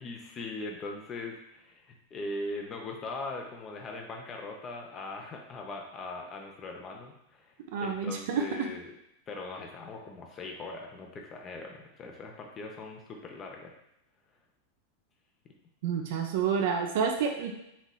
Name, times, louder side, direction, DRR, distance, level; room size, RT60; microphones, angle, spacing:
voice 1, 0.0-8.9 9.3-13.7, left 2 dB, 25° left, 1 dB, 0.6 m, -40 dB
voice 2, 7.7-8.7 15.8-17.5, right 6 dB, 50° right, 3 dB, 0.5 m, -29 dB
4.1 x 2.9 x 2.2 m, 0.83 s
figure-of-eight pair, 90°, 0 cm